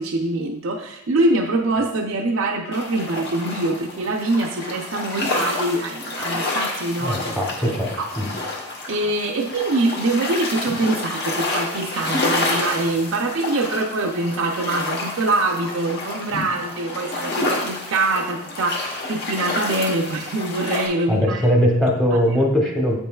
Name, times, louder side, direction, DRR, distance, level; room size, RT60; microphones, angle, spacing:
voice 1, 0.0-7.4 7.6-8.1 8.5-8.6 8.9-21.5, right 2 dB, 65° right, 2 dB, 0.5 m, -24 dB
sound 1, 2.7-20.9, left 2 dB, 50° left, 1.1 m, -29 dB
voice 2, 7.0-8.3 21.1-23.0, equal, ahead, 0 dB, 0.9 m, -20 dB
7.9 x 5.3 x 2.3 m, 0.83 s
head